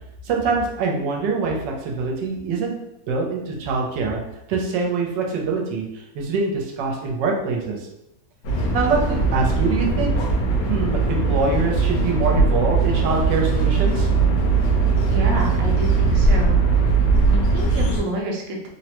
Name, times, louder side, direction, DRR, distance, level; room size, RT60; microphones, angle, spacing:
voice 1, 0.2-2.7 3.1-4.2 4.5-7.9 8.7-10.1 10.6-14.1, right 4 dB, 90° right, 0 dB, 1.3 m, -24 dB
sound 1, 8.4-18.0, right 3 dB, 65° left, 1.1 m, -19 dB
voice 2, 15.1-16.9 17.3-18.7, right 1 dB, 65° right, 0 dB, 0.9 m, -29 dB
3.4 x 2.0 x 2.8 m, 0.84 s
omnidirectional pair, 1.9 m